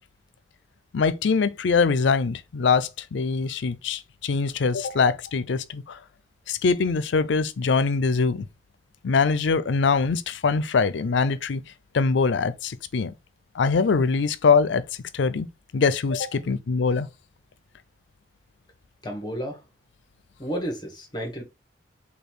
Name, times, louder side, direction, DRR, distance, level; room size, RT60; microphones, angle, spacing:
voice 1, 0.9-6.0 6.5-8.5 9.0-11.6 11.9-13.1 13.5-14.8 15.1-15.5 15.7-17.1, left 5 dB, 75° left, 0.4 m, -23 dB
voice 2, 19.0-19.6 20.4-21.4, equal, 25° left, 1.1 m, -32 dB
5.1 x 2.3 x 4.4 m
head